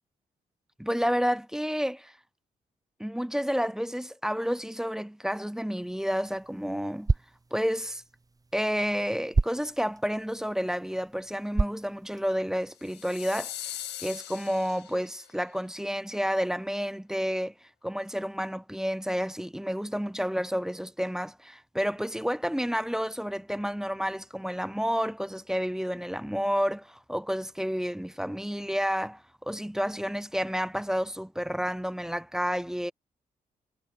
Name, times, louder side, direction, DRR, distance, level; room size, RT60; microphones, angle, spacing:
voice 1, 0.8-2.1 3.0-7.1 7.5-8.0 8.5-13.5 14.0-17.5 17.8-32.9, equal, 5° right, 0.4 m, -30 dB
sound 1, 5.8-12.7, right 3 dB, 20° right, 0.8 m, -33 dB
sound 2, 12.8-15.3, left 12 dB, 85° left, 2.1 m, -40 dB
supercardioid pair, 45°, 17 cm